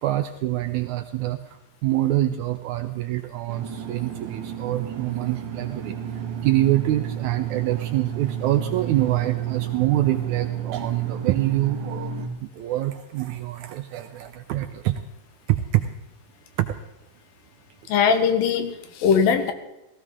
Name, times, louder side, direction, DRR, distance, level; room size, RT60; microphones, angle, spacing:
voice 1, 0.0-12.1 12.4-15.0 15.5-15.9 16.6-16.8, right 14 dB, 80° right, 8 dB, 1.8 m, -25 dB
sound 1, 3.5-12.3, right 9 dB, 60° right, 1.5 m, -31 dB
voice 2, 17.9-19.5, left 6 dB, 85° left, 8 dB, 2.9 m, -20 dB
17.5 x 15.5 x 3.6 m, 0.96 s
omnidirectional pair, 4.0 m